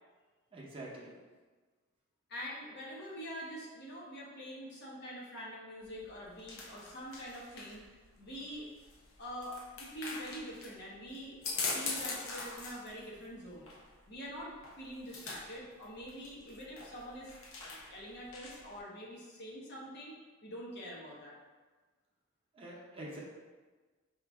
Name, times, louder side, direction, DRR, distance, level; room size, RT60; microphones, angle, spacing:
voice 1, 0.5-1.1 22.5-23.2, right 1 dB, 25° right, -4 dB, 0.7 m, -45 dB
voice 2, 2.3-7.8 8.2-8.6 9.2-11.4 11.7-13.7 14.1-17.3 17.7-20.1 20.4-21.3, equal, 55° left, -4 dB, 1.0 m, -45 dB
sound 1, 5.8-18.8, left 4 dB, 70° left, 0.7 m, -43 dB
4.8 x 2.6 x 3.4 m, 1.3 s
head